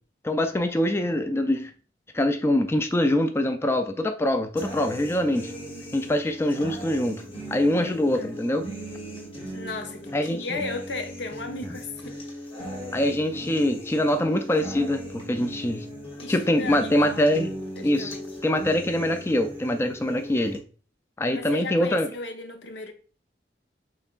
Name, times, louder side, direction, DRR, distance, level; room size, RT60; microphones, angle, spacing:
voice 1, 0.2-1.7 2.1-5.5 5.9-7.2 7.5-8.6 10.1-10.6 12.9-15.9 16.3-17.5 17.8-18.2 18.4-20.6 21.2-22.1, left 1 dB, 15° left, 0.3 m, -24 dB
sound 1, 4.6-20.6, equal, 30° left, 1.3 m, -38 dB
voice 2, 7.7-8.4 9.5-12.2 16.2-17.3 17.8-18.3 21.3-22.9, left 3 dB, 75° left, 0.7 m, -36 dB
5.6 x 3.7 x 2.4 m
head